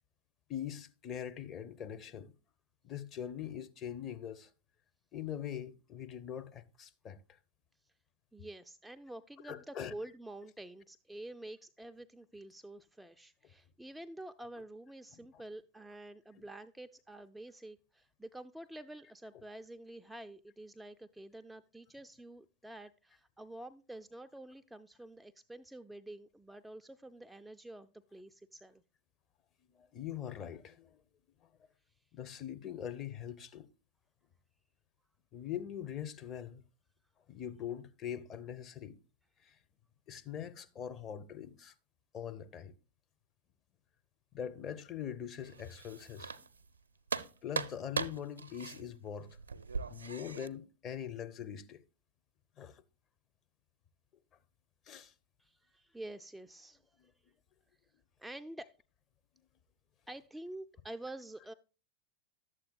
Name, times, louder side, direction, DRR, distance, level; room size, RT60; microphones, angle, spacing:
voice 1, 0.5-2.3 2.8-4.5 5.1-7.2 9.4-9.9 15.1-15.3 29.8-31.0 32.1-33.7 35.3-36.6 37.3-39.0 39.4-39.6 40.1-41.7 42.1-42.7 44.3-46.5 47.4-49.4 49.9-51.8 52.6-52.8 54.9-55.1 57.0-57.1, left 9 dB, 30° left, 0.6 m, -42 dB
voice 2, 8.3-28.8 55.4-57.1 58.2-58.7 60.1-61.5, right 1 dB, 5° right, 0.3 m, -48 dB
sound 1, 45.4-46.8 47.1-50.5, right 4 dB, 75° right, 0.5 m, -40 dB
11.5 x 7.5 x 2.3 m
figure-of-eight pair, 90°, 0 cm